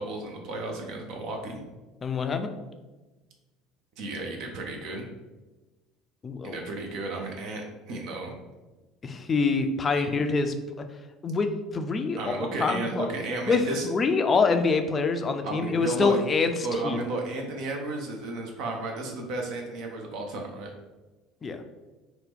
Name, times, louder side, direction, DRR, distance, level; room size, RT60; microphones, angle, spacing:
voice 1, 0.0-1.6 4.0-5.0 6.4-8.3 9.9-10.0 12.2-13.9 15.4-16.2 16.6-20.7, right 2 dB, 60° right, 1 dB, 0.5 m, -33 dB
voice 2, 2.0-2.5 6.2-6.6 9.0-10.5 11.2-13.1 13.5-16.5 16.8-17.0 21.4-21.6, left 4 dB, 30° left, 7 dB, 0.3 m, -25 dB
2.8 x 2.1 x 3.3 m, 1.2 s
hypercardioid pair, 65°, 0 cm